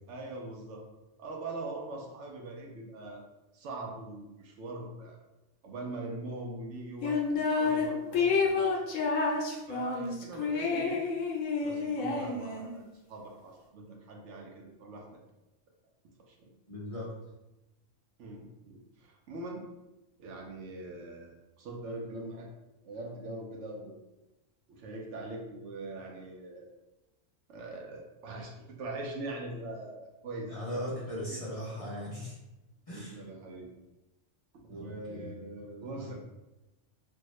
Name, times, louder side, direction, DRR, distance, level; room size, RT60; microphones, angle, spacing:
voice 1, 0.1-0.8 1.2-3.2 3.5-5.2 5.6-8.7 9.7-11.0 11.6-12.8 13.1-15.2 16.3-16.5 18.2-19.6 20.2-22.5 22.8-24.0 24.7-26.7 27.5-31.4 32.9-33.7 34.6-36.1, right 2 dB, 70° right, 0 dB, 0.9 m, -42 dB
sound 1, 7.0-7.9 8.1-12.8, left 4 dB, 80° left, 1.0 m, -29 dB
voice 2, 16.7-17.1 30.5-32.4 32.9-33.2 34.7-35.3 35.9-36.1, equal, 35° left, -8 dB, 0.6 m, -39 dB
3.4 x 2.1 x 3.0 m, 1.0 s
omnidirectional pair, 1.3 m